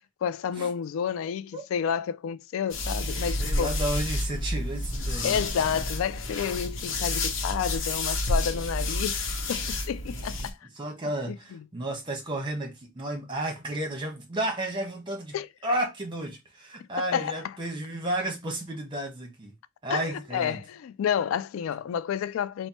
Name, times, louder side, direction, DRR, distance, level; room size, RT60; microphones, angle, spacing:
voice 1, 0.2-3.7 5.2-10.6 11.3-11.6 15.3-15.5 17.0-17.5 19.9-22.7, left 8 dB, 85° left, 0.3 m, -30 dB
sound 1, 2.7-10.5, left 2 dB, 70° left, 0.9 m, -30 dB
voice 2, 3.4-5.4 10.8-15.4 15.6-19.5 19.8-20.6, right 1 dB, 25° right, 1.1 m, -32 dB
4.4 x 2.1 x 4.2 m
head